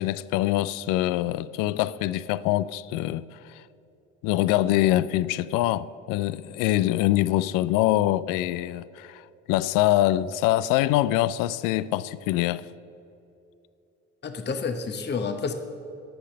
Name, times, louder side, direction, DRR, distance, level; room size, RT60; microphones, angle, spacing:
voice 1, 0.0-3.6 4.2-12.7, left 15 dB, 60° left, 0.5 m, -24 dB
voice 2, 14.2-15.5, left 5 dB, 30° left, 0.9 m, -29 dB
13.5 x 5.7 x 6.5 m
hypercardioid pair, 55°, 37 cm